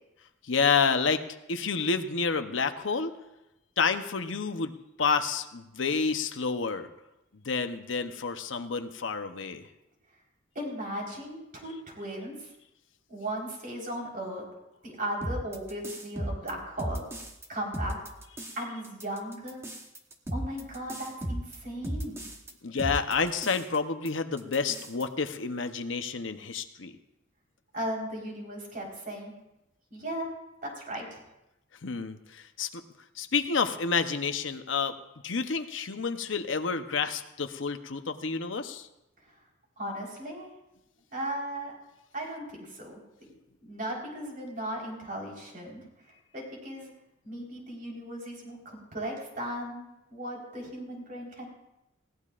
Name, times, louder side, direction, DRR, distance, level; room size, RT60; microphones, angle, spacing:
voice 1, 0.5-1.2 1.5-3.1 3.8-4.7 5.0-6.9 7.4-9.7 22.6-26.9 31.8-32.8 33.2-35.0 35.2-38.9, left 5 dB, 80° left, 8 dB, 0.9 m, -29 dB
voice 2, 10.5-12.5 13.1-14.4 14.8-17.0 17.5-18.0 18.5-19.6 20.3-22.3 27.7-29.3 29.9-30.3 30.6-31.2 39.3-39.4 39.8-40.5 41.1-41.8 42.1-43.0 43.6-45.8 46.3-46.9 47.2-51.5, right 1 dB, 45° right, -1 dB, 4.3 m, -37 dB
sound 1, 15.2-17.5 17.7-18.6 18.8-22.5 22.8-23.8 24.1-24.2 24.4-25.0, right 1 dB, 15° right, 1.1 m, -36 dB
20.5 x 17.0 x 2.5 m, 0.92 s
head